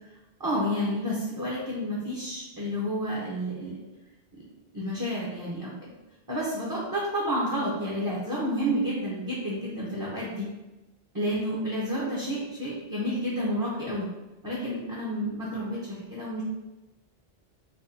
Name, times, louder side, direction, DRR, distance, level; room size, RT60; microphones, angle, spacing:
voice 1, 0.4-3.8 4.7-5.9 6.3-10.5 11.1-14.1 14.4-16.4, equal, 25° right, -6 dB, 0.6 m, -30 dB
4.3 x 2.3 x 2.6 m, 1.0 s
omnidirectional pair, 1.0 m